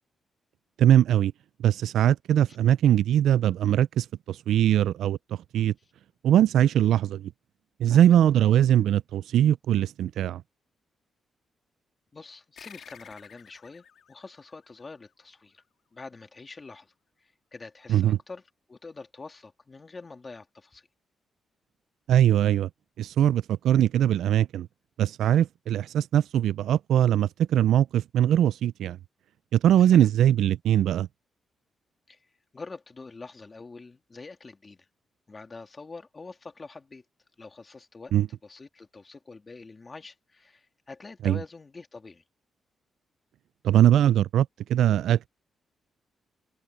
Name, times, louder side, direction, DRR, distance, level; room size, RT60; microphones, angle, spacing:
voice 1, 0.8-1.3 1.6-5.2 5.5-5.7 6.2-7.3 7.8-10.4 17.9-18.2 22.1-22.7 23.0-24.7 25.0-29.0 29.5-31.1 38.1-38.3 41.2-41.4 43.6-45.3, right 11 dB, 90° right, 0.3 m, -21 dB
voice 2, 7.8-8.1 12.1-15.6 15.9-16.9 17.2-20.9 29.8-30.1 32.1-32.3 32.5-34.9 35.3-37.0 37.4-42.2, left 3 dB, 25° left, 2.0 m, -45 dB
sound 1, 12.6-15.5, left 8 dB, 65° left, 2.5 m, -52 dB
open air
wide cardioid pair, 150°, 0 cm